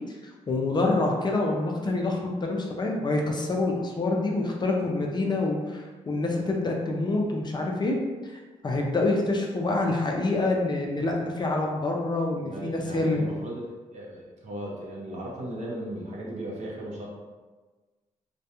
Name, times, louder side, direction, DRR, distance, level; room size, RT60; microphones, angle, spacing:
voice 1, 0.5-13.2, left 2 dB, 30° left, 0 dB, 0.4 m, -27 dB
voice 2, 12.4-17.1, right 1 dB, 55° right, -3 dB, 0.7 m, -37 dB
2.3 x 2.1 x 2.8 m, 1.3 s
cardioid pair, 80°, 14 cm